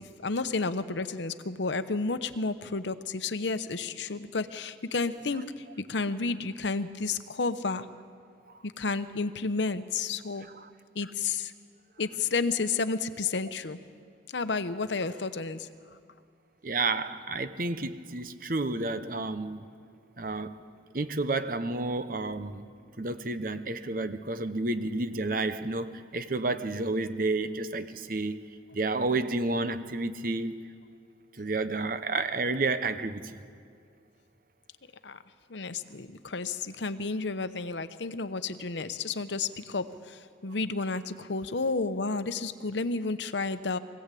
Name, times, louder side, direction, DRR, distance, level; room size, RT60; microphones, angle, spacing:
voice 1, 0.0-7.9 8.6-10.5 10.9-11.5 12.0-13.8 14.3-15.7 35.0-35.2 35.5-43.8, left 4 dB, 75° left, 0.9 m, -31 dB
voice 2, 16.6-19.7 20.2-20.6 20.9-22.6 23.0-30.6 31.4-33.4, right 3 dB, 50° right, 1.0 m, -31 dB
23.5 x 16.5 x 8.4 m
head